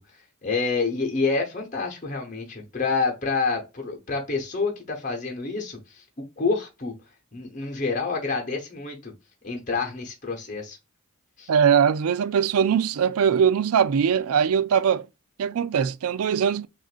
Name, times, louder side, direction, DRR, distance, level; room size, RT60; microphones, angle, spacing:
voice 1, 0.4-6.0 6.4-6.9 7.3-9.1 9.4-10.8 11.4-11.5, left 4 dB, 35° left, 0.9 m, -28 dB
voice 2, 11.5-15.1 15.4-16.7, right 7 dB, 85° right, 0.4 m, -21 dB
6.1 x 2.6 x 2.4 m
head